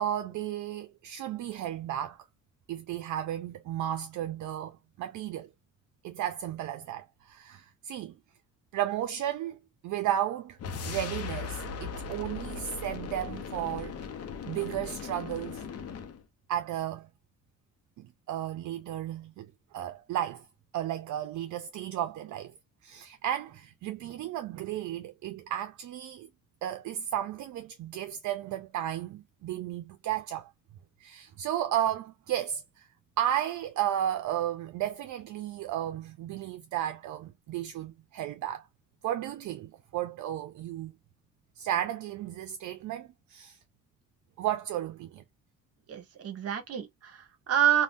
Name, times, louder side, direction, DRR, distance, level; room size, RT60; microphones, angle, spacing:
voice 1, 0.0-2.2 2.7-5.5 6.0-8.2 8.7-9.6 9.8-10.6 10.8-14.0 14.4-15.6 16.5-17.1 18.0-20.5 20.7-22.5 22.8-26.3 26.6-30.5 31.0-32.9 33.2-38.7 39.0-40.9 41.6-43.6 44.4-45.2, right 11 dB, 65° right, 0.5 m, -33 dB
sound 1, 10.6-16.2, left 6 dB, 50° left, 0.7 m, -38 dB
voice 2, 45.9-47.8, right 10 dB, 50° right, 0.9 m, -28 dB
2.6 x 2.2 x 3.4 m
cardioid pair, 130°, 32 cm